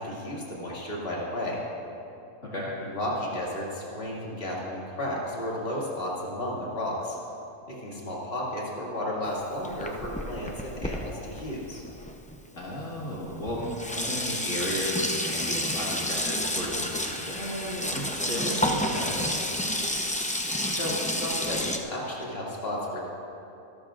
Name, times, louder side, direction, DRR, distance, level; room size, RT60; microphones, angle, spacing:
voice 1, 0.0-1.6 2.8-7.2 7.7-11.8 20.7-23.0, left 1 dB, 40° left, -5 dB, 2.7 m, -33 dB
Sink (filling or washing), 9.2-12.4 13.1-13.2 13.5-21.8, left 1 dB, 10° left, 0.4 m, -30 dB
voice 2, 12.6-13.6 14.0-19.3, equal, 60° left, -7 dB, 2.4 m, -34 dB
25.0 x 13.0 x 2.5 m, 2.8 s
omnidirectional pair, 1.5 m